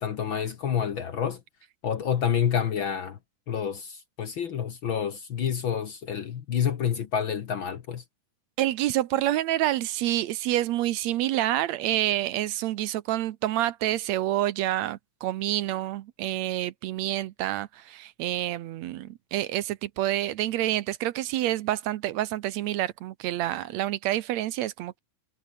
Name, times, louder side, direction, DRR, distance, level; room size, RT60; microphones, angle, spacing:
voice 1, 0.0-1.4 1.8-3.2 3.5-8.0, left 8 dB, 55° left, 1.6 m, -28 dB
voice 2, 8.6-25.0, right 14 dB, 75° right, 1.9 m, -28 dB
omnidirectional pair, 3.4 m